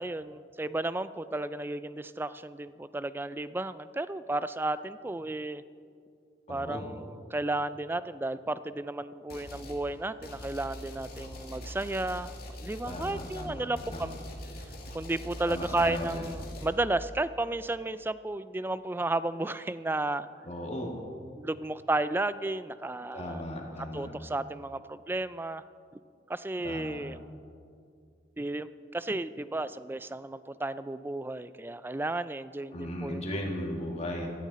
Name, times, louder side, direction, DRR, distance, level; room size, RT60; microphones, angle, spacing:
voice 1, 0.0-5.6 6.5-12.3 12.6-14.1 14.9-20.3 21.3-23.4 23.9-25.6 26.3-27.2 28.4-33.3, right 2 dB, 10° right, 14 dB, 0.3 m, -33 dB
voice 2, 6.5-6.9 12.9-14.2 15.5-16.3 20.4-20.9 23.1-24.1 26.6-27.0 32.7-34.3, left 1 dB, 35° left, 0 dB, 2.3 m, -37 dB
sound 1, 9.3-9.8 10.2-16.7, equal, 55° left, 2.1 m, -43 dB
16.5 x 14.5 x 4.2 m, 2.3 s
head